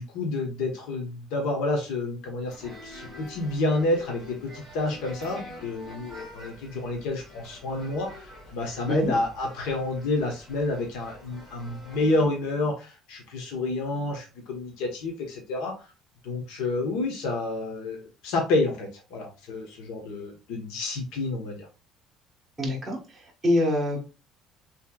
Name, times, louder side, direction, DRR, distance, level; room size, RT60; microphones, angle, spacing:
voice 1, 0.0-15.9 16.2-21.7, left 2 dB, 80° left, 1 dB, 1.2 m, -29 dB
sound 1, 2.5-12.3, left 1 dB, 10° left, 2.4 m, -46 dB
voice 2, 22.6-24.0, left 1 dB, 5° right, -3 dB, 1.5 m, -26 dB
5.8 x 3.4 x 2.3 m, 0.31 s
cardioid pair, 175°, 0 cm